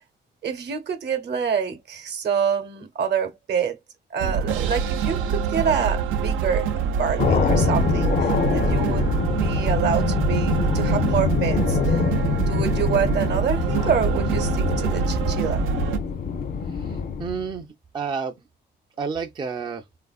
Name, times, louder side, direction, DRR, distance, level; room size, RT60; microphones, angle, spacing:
voice 1, 0.4-3.8 4.1-12.0 12.4-15.6, right 7 dB, 60° right, 0.8 m, -27 dB
sound 1, 4.2-16.0, right 6 dB, 90° right, 0.5 m, -25 dB
sound 2, 7.2-17.6, left 6 dB, 45° left, 0.5 m, -25 dB
voice 2, 16.8-18.4 19.0-19.8, right 5 dB, 25° right, 0.3 m, -30 dB
3.3 x 2.5 x 2.3 m
cardioid pair, 90°, 20 cm